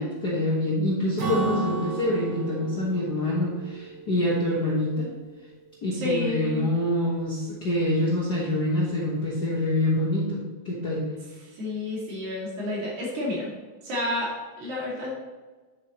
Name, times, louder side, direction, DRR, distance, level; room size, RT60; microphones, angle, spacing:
voice 1, 0.0-5.1 5.8-11.1, left 1 dB, 50° left, -6 dB, 1.2 m, -26 dB
Acoustic guitar / Strum, 1.2-4.8, right 4 dB, 60° right, 0.9 m, -32 dB
voice 2, 5.9-6.7 11.5-13.5 13.8-15.1, left 2 dB, 75° right, -5 dB, 3.7 m, -30 dB
9.3 x 7.4 x 3.0 m, 1.4 s
omnidirectional pair, 3.5 m